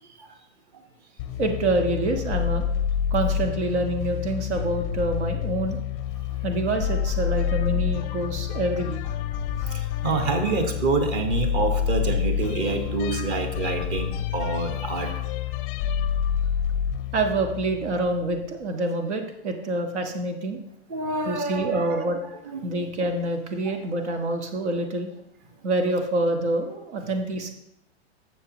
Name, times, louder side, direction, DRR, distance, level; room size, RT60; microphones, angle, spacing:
sound 1, 1.2-18.5, left 8 dB, 30° left, 0.5 m, -28 dB
voice 1, 1.4-2.7 3.1-5.8 6.4-9.0 17.1-20.6 21.2-22.2 22.6-25.1 25.6-27.5, right 2 dB, 75° right, 5 dB, 1.5 m, -26 dB
voice 2, 9.7-15.2 20.9-22.1 22.5-22.7, right 3 dB, 35° right, 6 dB, 1.4 m, -27 dB
12.5 x 7.4 x 3.0 m, 0.80 s
hypercardioid pair, 140°, 35 cm